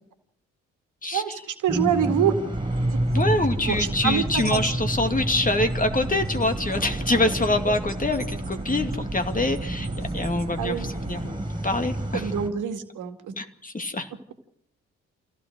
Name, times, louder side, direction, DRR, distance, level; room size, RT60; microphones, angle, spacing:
voice 1, 1.1-2.3 3.6-4.7 5.0-5.1 7.6-7.7 10.6-10.9 12.1-13.3, right 9 dB, 60° right, 7 dB, 2.0 m, -26 dB
sound 1, 1.7-12.5, right 1 dB, 15° right, 7.0 m, -30 dB
sound 2, 2.5-11.3, right 3 dB, 40° right, 2.7 m, -35 dB
voice 2, 3.1-10.8 11.1-12.2 13.4-14.1, left 2 dB, 25° left, 6 dB, 2.4 m, -25 dB
27.0 x 16.0 x 6.3 m, 0.77 s
figure-of-eight pair, 40°, 35 cm